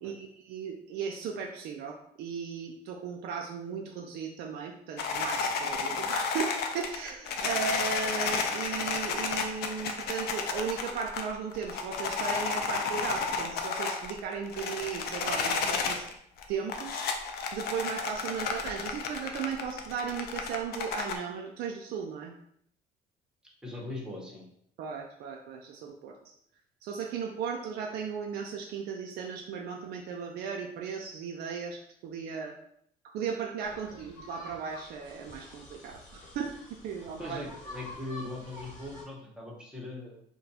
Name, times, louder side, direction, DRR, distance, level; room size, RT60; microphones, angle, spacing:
voice 1, 0.0-16.1 16.5-17.1 17.5-22.3 24.8-26.3 26.8-32.6 33.1-36.5 36.8-37.4, right 6 dB, 75° right, 1 dB, 0.4 m, -36 dB
sound 1, 5.0-16.1 16.4-21.2, left 5 dB, 70° left, 0.5 m, -32 dB
voice 2, 23.6-24.4 33.9-34.0 37.2-40.2, left 2 dB, 5° right, -3 dB, 0.9 m, -40 dB
sound 2, 33.6-39.0, left 1 dB, 55° left, 1.3 m, -48 dB
2.4 x 2.2 x 4.0 m, 0.70 s
cardioid pair, 110°, 17 cm